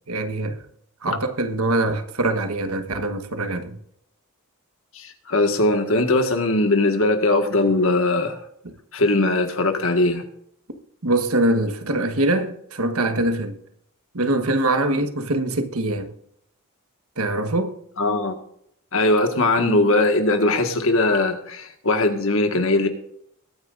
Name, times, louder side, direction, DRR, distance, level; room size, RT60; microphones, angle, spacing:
voice 1, 0.1-0.6 1.0-3.8 11.0-13.6 14.1-16.1 17.2-17.8 19.6-19.9, right 2 dB, 85° right, 1.4 m, -23 dB
voice 2, 4.9-8.4 8.9-10.2 18.0-18.4 18.9-22.9, left 2 dB, 65° left, 1.7 m, -20 dB
21.5 x 9.6 x 2.6 m
head